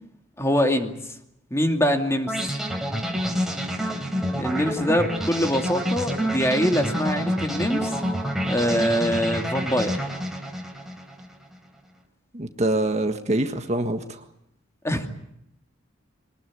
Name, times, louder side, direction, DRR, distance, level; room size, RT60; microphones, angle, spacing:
voice 1, 0.4-1.0 1.5-2.4 4.4-8.0 8.5-10.0 14.8-15.1, equal, 15° left, 5 dB, 2.5 m, -23 dB
sound 1, 2.3-11.3, equal, ahead, 3.9 m, -28 dB
voice 2, 12.3-14.2, right 1 dB, 35° right, 7 dB, 1.6 m, -25 dB
23.5 x 20.0 x 9.8 m, 0.77 s
head